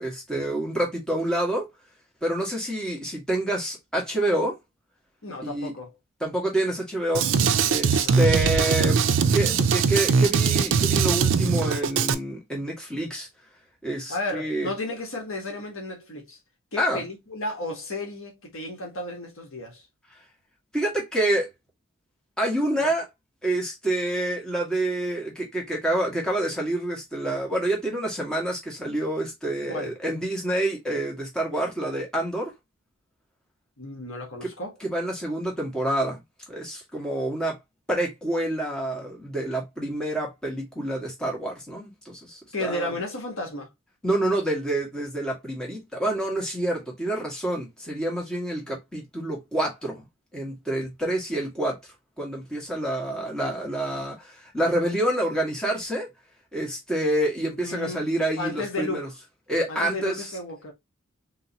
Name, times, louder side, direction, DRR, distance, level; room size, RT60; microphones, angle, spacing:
voice 1, 0.0-1.7 2.2-4.6 5.4-5.7 6.2-7.3 7.7-13.3 13.8-14.7 16.8-17.0 20.7-21.5 22.4-23.0 23.4-32.5 34.4-34.5 34.8-36.2 36.5-37.6 37.9-42.9 44.0-50.0 50.3-51.8 52.2-56.1 56.5-59.1 59.5-60.3, right 1 dB, 5° left, 1.5 m, -27 dB
voice 2, 5.2-5.9 8.0-8.2 14.1-16.4 16.7-19.9 22.8-22.9 29.7-29.9 33.8-34.8 42.5-43.7 57.4-58.1 58.4-59.1 59.7-60.7, left 2 dB, 65° left, 1.4 m, -33 dB
Drum kit, 7.1-12.1, right 6 dB, 65° right, 0.4 m, -21 dB
3.8 x 2.9 x 2.8 m
head